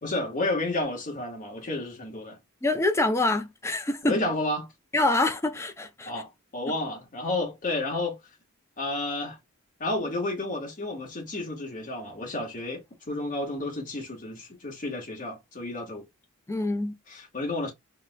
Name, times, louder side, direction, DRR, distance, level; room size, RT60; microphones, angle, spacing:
voice 1, 0.0-2.4 4.0-4.7 6.0-8.2 8.8-9.4 9.8-16.0 17.1-17.7, left 2 dB, 40° left, 1.3 m, -31 dB
voice 2, 2.6-4.2 4.9-6.1 16.5-16.9, left 2 dB, 10° left, 0.4 m, -25 dB
4.5 x 2.2 x 2.3 m
head